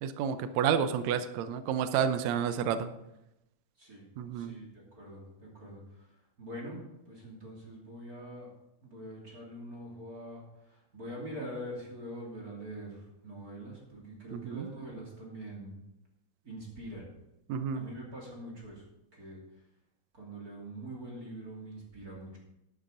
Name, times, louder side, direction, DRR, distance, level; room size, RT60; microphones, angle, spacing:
voice 1, 0.0-2.9 4.2-4.6 14.3-14.7 17.5-17.9, right 8 dB, 75° right, 10 dB, 2.0 m, -30 dB
voice 2, 4.3-6.1 6.4-6.8 7.1-8.5 8.8-15.8 16.4-17.1 17.7-18.8 19.1-19.4 20.1-22.4, right 1 dB, 30° right, -3 dB, 3.1 m, -44 dB
11.5 x 11.0 x 3.8 m, 0.86 s
omnidirectional pair, 3.4 m